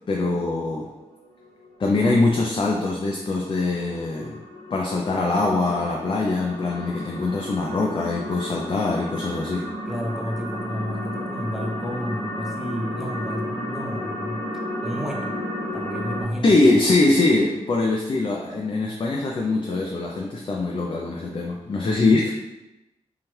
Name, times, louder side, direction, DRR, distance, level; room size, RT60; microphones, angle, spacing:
voice 1, 0.1-0.9 1.8-4.4 4.7-9.7 16.4-22.4, left 2 dB, 45° left, -1 dB, 0.4 m, -22 dB
sound 1, 0.9-16.2, left 1 dB, 70° left, 1.0 m, -33 dB
voice 2, 9.9-14.4 14.8-15.3 15.7-16.7, equal, 5° right, -1 dB, 0.6 m, -31 dB
2.8 x 2.3 x 3.1 m, 0.98 s
cardioid pair, 45°, 12 cm